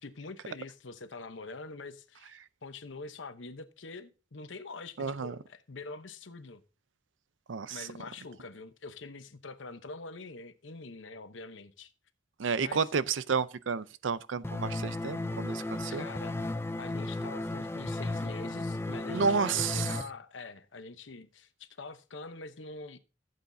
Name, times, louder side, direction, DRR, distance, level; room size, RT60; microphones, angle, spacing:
voice 1, 0.0-6.6 7.7-11.9 12.6-12.9 15.9-16.3 16.8-23.0, left 3 dB, 80° left, 0.9 m, -45 dB
voice 2, 5.0-5.4 7.5-7.9 12.4-16.1 19.1-19.9, right 5 dB, 80° right, 0.6 m, -31 dB
sound 1, 14.4-20.0, left 2 dB, 15° left, 0.5 m, -34 dB
15.5 x 8.0 x 2.7 m
head